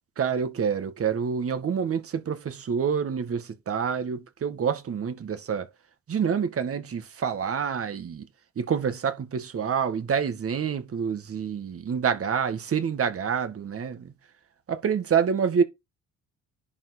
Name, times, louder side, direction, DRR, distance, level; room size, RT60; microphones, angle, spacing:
voice 1, 0.2-5.7 6.1-8.3 8.6-14.1 14.7-15.6, right 7 dB, 50° right, 1.8 m, -27 dB
10.5 x 4.9 x 4.4 m
cardioid pair, 90°, 30 cm